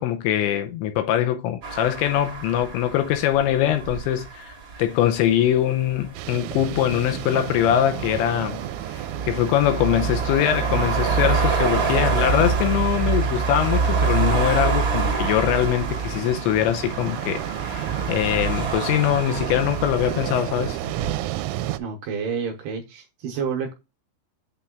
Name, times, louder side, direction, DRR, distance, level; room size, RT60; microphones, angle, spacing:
voice 1, 0.0-4.5 4.8-8.6 9.2-20.8, left 11 dB, 80° left, 2.8 m, -22 dB
sound 1, 1.6-21.1, right 4 dB, 55° right, 1.3 m, -27 dB
sound 2, 6.1-21.8, right 14 dB, 85° right, 3.0 m, -32 dB
voice 2, 21.8-23.7, right 6 dB, 70° right, 2.6 m, -29 dB
8.5 x 3.4 x 3.6 m
omnidirectional pair, 5.6 m